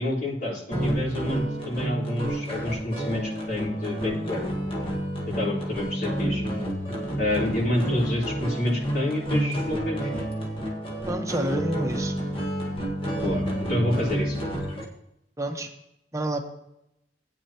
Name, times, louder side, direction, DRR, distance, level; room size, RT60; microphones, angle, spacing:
voice 1, 0.0-4.5 5.4-6.4 7.2-10.1 13.2-14.4, left 1 dB, 60° left, -7 dB, 4.2 m, -28 dB
sound 1, 0.7-14.8, equal, 35° left, 1.8 m, -29 dB
voice 2, 11.0-12.1 15.4-15.7 16.1-16.4, right 1 dB, 20° right, 4 dB, 1.1 m, -29 dB
16.0 x 9.3 x 3.0 m, 0.83 s
head